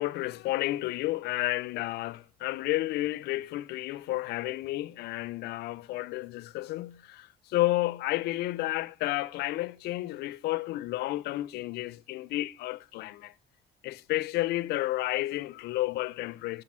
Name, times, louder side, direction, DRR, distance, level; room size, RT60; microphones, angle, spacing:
voice 1, 0.0-13.3 13.8-16.6, left 17 dB, 75° left, 0.4 m, -31 dB
5.9 x 4.6 x 6.1 m
cardioid pair, 110°, 17 cm